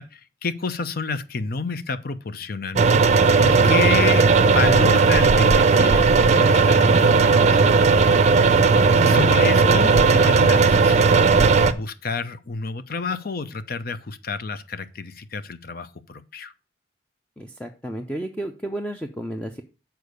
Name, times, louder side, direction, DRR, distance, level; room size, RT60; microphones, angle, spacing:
voice 1, 0.0-7.9 8.4-8.7 9.0-11.1 11.7-16.5, left 4 dB, 55° left, 0.6 m, -30 dB
sound 1, 2.8-11.7, right 4 dB, 40° right, 0.5 m, -16 dB
voice 2, 17.4-19.6, right 1 dB, 5° left, 0.5 m, -32 dB
6.9 x 4.6 x 6.5 m
head